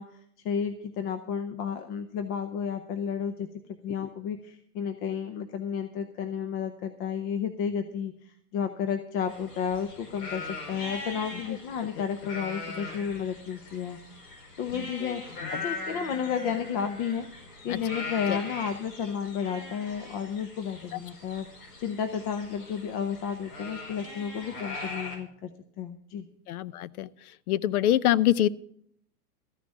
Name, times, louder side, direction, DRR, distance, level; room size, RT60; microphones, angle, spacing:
voice 1, 0.0-14.0 14.6-17.3 17.6-21.5 21.8-25.5 25.8-26.3, left 7 dB, 30° left, 9 dB, 0.7 m, -32 dB
sound 1, 9.3-25.2, left 3 dB, 85° left, 5.0 m, -41 dB
voice 2, 14.7-15.2 15.5-15.6 17.7-17.8 18.3-18.4 26.5-27.1 27.5-28.5, left 12 dB, 70° left, 19 dB, 0.7 m, -25 dB
14.0 x 6.0 x 8.5 m, 0.66 s
hypercardioid pair, 135°, 46 cm